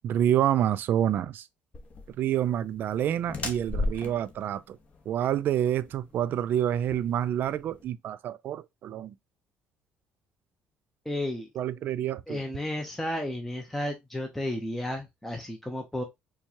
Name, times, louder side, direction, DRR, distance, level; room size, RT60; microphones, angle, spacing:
voice 1, 0.0-1.4 2.2-4.8 5.1-9.1 11.6-12.4, right 10 dB, 55° right, 0.3 m, -28 dB
sound 1, 1.7-7.8, left 2 dB, 35° left, 1.0 m, -37 dB
voice 2, 11.1-11.5 12.3-16.0, left 1 dB, 5° left, 0.7 m, -33 dB
4.5 x 2.3 x 2.8 m
cardioid pair, 110°, 4 cm